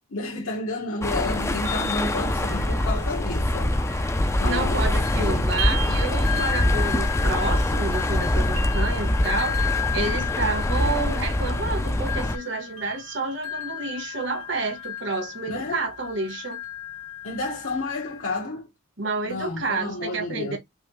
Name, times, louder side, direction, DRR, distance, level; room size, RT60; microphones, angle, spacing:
voice 1, 0.1-3.8 4.4-4.9 5.1-5.4 15.5-15.8 17.2-18.7 19.2-20.6, left 2 dB, 85° left, 1.4 m, -31 dB
sound 1, 1.0-12.4, left 1 dB, 15° left, 0.4 m, -24 dB
sound 2, 1.6-4.7 5.0-18.3, left 6 dB, 85° right, 2.1 m, -34 dB
voice 2, 4.4-16.6 19.0-20.6, right 3 dB, 55° right, 1.4 m, -30 dB
5.4 x 2.6 x 3.2 m
head